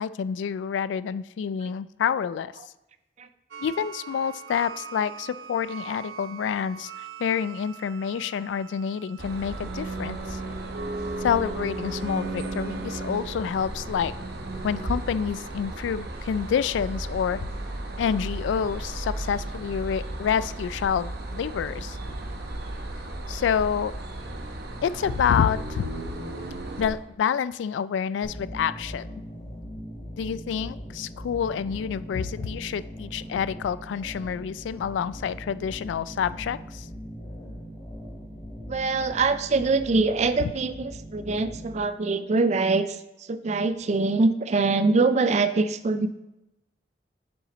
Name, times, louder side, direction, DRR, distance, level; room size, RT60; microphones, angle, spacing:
voice 1, 0.0-2.5 3.6-6.9 7.2-10.4 11.2-14.1 14.6-17.5 18.0-22.0 23.3-23.9 24.8-25.9 26.8-29.1 30.2-36.9, left 7 dB, 85° left, 16 dB, 0.3 m, -28 dB
sound 1, 3.5-14.9, right 3 dB, 90° right, 0.7 m, -41 dB
sound 2, 9.2-26.9, right 2 dB, 60° right, 0.9 m, -35 dB
sound 3, 28.2-41.8, equal, 30° left, 2.6 m, -40 dB
voice 2, 38.7-43.0 43.3-46.1, right 3 dB, 40° right, 11 dB, 0.4 m, -24 dB
7.0 x 6.2 x 3.9 m, 0.96 s
head